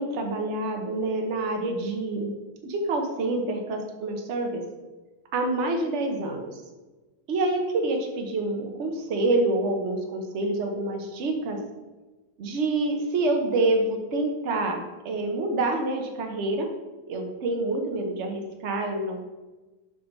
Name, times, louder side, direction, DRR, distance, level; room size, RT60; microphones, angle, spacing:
voice 1, 0.0-2.3 2.6-4.6 5.3-6.5 7.3-11.6 12.4-16.7 17.1-19.2, right 2 dB, 45° right, 3 dB, 1.0 m, -27 dB
7.0 x 5.5 x 4.0 m, 1.2 s
omnidirectional pair, 2.2 m